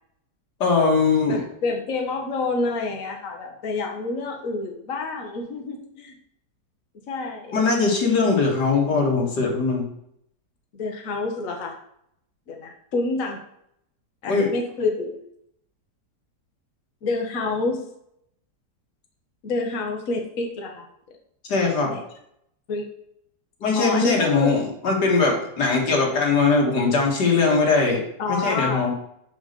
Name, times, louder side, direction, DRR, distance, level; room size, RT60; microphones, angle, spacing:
voice 1, 0.6-1.4 7.5-9.9 14.3-14.5 21.5-22.0 23.6-28.0 28.3-28.9, left 4 dB, 85° left, 0 dB, 2.4 m, -20 dB
voice 2, 1.3-6.1 7.1-7.6 10.7-11.8 12.5-13.4 14.2-15.2 17.0-17.8 19.4-20.9 21.8-22.0 22.7-22.8 23.7-24.6 28.2-28.9, left 3 dB, 55° left, 2 dB, 1.5 m, -28 dB
6.2 x 5.2 x 6.6 m, 0.73 s
omnidirectional pair, 1.8 m